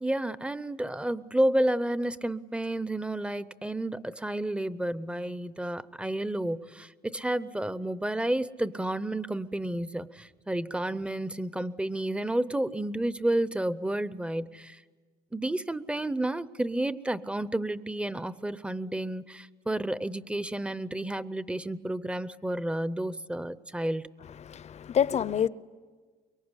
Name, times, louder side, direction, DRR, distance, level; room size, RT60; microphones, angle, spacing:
voice 1, 0.0-14.8 15.3-24.0, right 1 dB, 5° right, 0.7 m, -31 dB
voice 2, 24.4-25.5, left 8 dB, 40° left, 0.7 m, -27 dB
24.0 x 23.0 x 9.8 m
cardioid pair, 110°, 17 cm